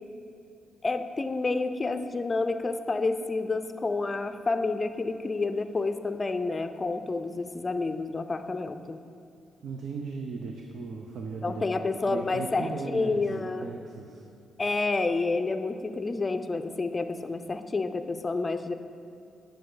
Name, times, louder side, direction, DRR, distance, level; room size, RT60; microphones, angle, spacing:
voice 1, 0.8-9.0 11.4-13.7 14.6-18.7, left 3 dB, 30° left, 8 dB, 0.5 m, -29 dB
voice 2, 9.6-11.7 12.0-14.2, right 4 dB, 65° right, 2 dB, 0.6 m, -37 dB
10.0 x 6.7 x 3.9 m, 2.6 s
cardioid pair, 80°, 0 cm